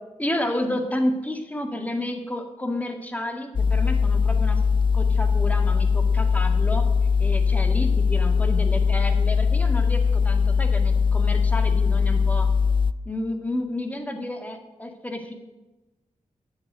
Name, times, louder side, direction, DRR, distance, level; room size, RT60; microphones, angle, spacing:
voice 1, 0.2-4.6 4.9-6.8 7.2-12.5 13.1-15.3, left 1 dB, 10° left, 4 dB, 1.9 m, -30 dB
sound 1, 3.5-12.9, left 5 dB, 40° left, 0.5 m, -21 dB
9.9 x 7.5 x 9.3 m, 1.1 s
wide cardioid pair, 90°, 13 cm